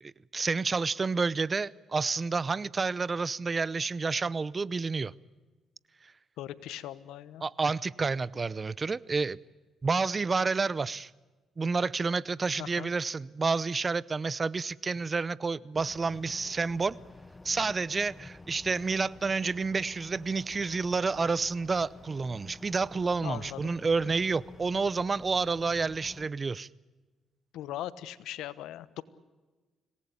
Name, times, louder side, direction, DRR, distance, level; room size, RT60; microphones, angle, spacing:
voice 1, 0.0-5.1 7.4-9.4 9.8-11.1 11.6-17.0 17.4-26.7, right 4 dB, 30° right, 0.7 m, -29 dB
voice 2, 6.4-7.4 12.6-12.9 23.2-23.7 27.5-29.0, left 13 dB, 90° left, 1.1 m, -39 dB
sound 1, 15.7-26.3, left 2 dB, 15° left, 1.2 m, -50 dB
25.5 x 19.0 x 8.5 m
cardioid pair, 90°, 0 cm